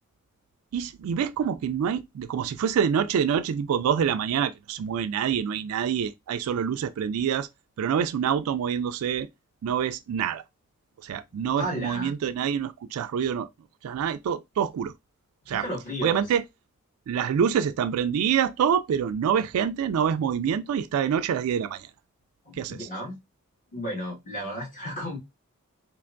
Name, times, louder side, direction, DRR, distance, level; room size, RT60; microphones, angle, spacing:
voice 1, 0.7-7.5 7.8-9.3 9.6-10.4 11.0-13.5 13.8-14.9 15.5-15.7 16.0-16.4 17.1-21.9 22.6-22.9, right 8 dB, 80° right, 0.3 m, -26 dB
voice 2, 11.6-12.1 15.5-16.3 22.4-23.2 23.7-25.2, equal, 35° left, 1.7 m, -33 dB
4.3 x 2.5 x 2.5 m
head